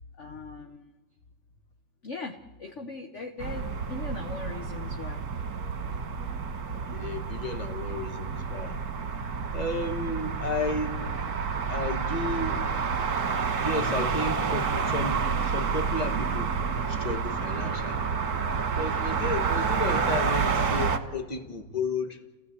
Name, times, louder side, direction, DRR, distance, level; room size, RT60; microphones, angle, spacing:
voice 1, 0.2-0.9 2.0-5.5, left 3 dB, 45° left, 5 dB, 1.2 m, -40 dB
sound 1, 3.4-21.0, right 5 dB, 55° right, 1.8 m, -29 dB
voice 2, 6.7-8.8 9.5-11.0 11.7-12.8 13.6-18.1 18.7-22.2, left 3 dB, 25° left, 6 dB, 1.5 m, -33 dB
30.0 x 16.5 x 8.3 m, 1.3 s
omnidirectional pair, 2.0 m